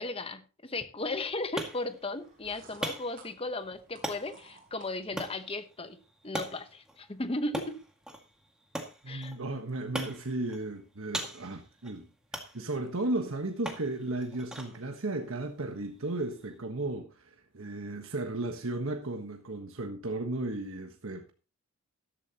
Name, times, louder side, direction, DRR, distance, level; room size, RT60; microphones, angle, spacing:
voice 1, 0.0-6.0 6.2-7.8 9.1-9.3, left 2 dB, 25° left, 1.0 m, -36 dB
sound 1, 1.0-16.6, right 1 dB, 5° right, 2.0 m, -43 dB
sound 2, 2.1-5.4, right 3 dB, 40° right, 4.4 m, -56 dB
voice 2, 9.0-12.1 12.5-21.3, right 2 dB, 65° right, 1.3 m, -35 dB
13.5 x 12.5 x 2.9 m
head